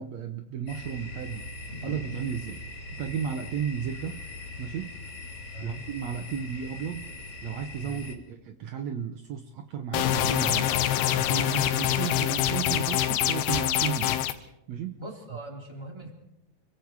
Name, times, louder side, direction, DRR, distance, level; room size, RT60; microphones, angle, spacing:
voice 1, 0.0-1.5 1.8-4.2 4.6-5.0 5.3-7.2 7.4-10.8 11.1-15.0, right 8 dB, 75° right, 6 dB, 1.6 m, -34 dB
sound 1, 0.7-8.2, left 2 dB, 35° left, 3.7 m, -41 dB
voice 2, 5.5-5.8 7.8-8.1 15.0-16.1, right 2 dB, 5° right, 1 dB, 3.2 m, -41 dB
sound 2, 9.9-14.3, left 12 dB, 85° left, 3.0 m, -25 dB
30.0 x 23.5 x 4.8 m, 0.83 s
omnidirectional pair, 4.6 m